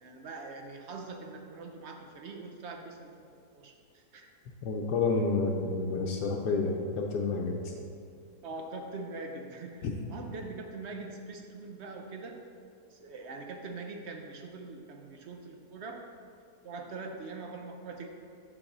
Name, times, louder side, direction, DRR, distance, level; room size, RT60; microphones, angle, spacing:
voice 1, 0.0-3.3 3.5-4.3 8.4-12.4 12.9-16.0 16.6-18.1, right 3 dB, 65° right, 3 dB, 0.7 m, -43 dB
voice 2, 4.6-7.7 9.8-9.9, left 3 dB, 80° left, 0 dB, 1.2 m, -29 dB
7.7 x 4.0 x 6.0 m, 2.4 s
omnidirectional pair, 1.8 m